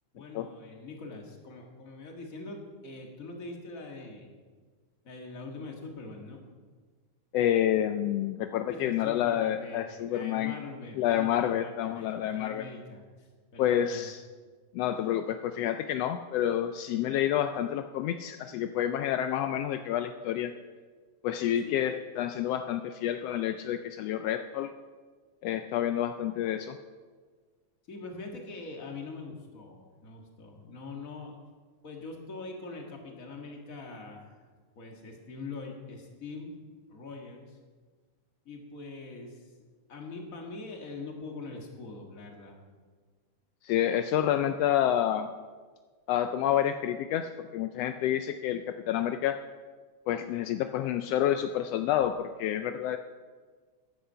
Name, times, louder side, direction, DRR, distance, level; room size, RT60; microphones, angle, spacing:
voice 1, 0.1-4.3 5.0-6.4 8.7-14.1 21.6-21.9 27.9-31.4 31.8-34.3 34.8-37.6 38.5-39.5 39.9-42.6, left 3 dB, 30° left, 2 dB, 1.9 m, -43 dB
voice 2, 7.3-10.5 11.0-12.7 13.6-14.2 14.7-20.5 21.2-24.7 25.4-26.8 43.6-45.3 46.1-49.4 50.1-53.0, left 11 dB, 85° left, 9 dB, 1.4 m, -29 dB
15.0 x 10.0 x 5.6 m, 1.5 s
omnidirectional pair, 3.4 m